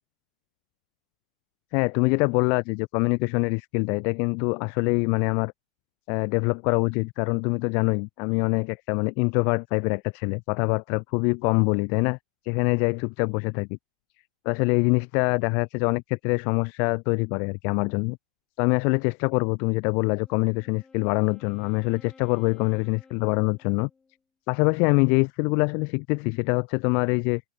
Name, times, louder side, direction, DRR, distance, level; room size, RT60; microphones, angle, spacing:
voice 1, 1.7-5.5 6.1-12.2 12.4-13.7 14.5-18.2 18.6-23.9 24.5-27.4, left 34 dB, 50° left, 0.4 m, -24 dB
Wind instrument woodwind instrument, 19.9-24.2, left 4 dB, 15° left, 3.1 m, -55 dB
hypercardioid pair, 95°, 4 cm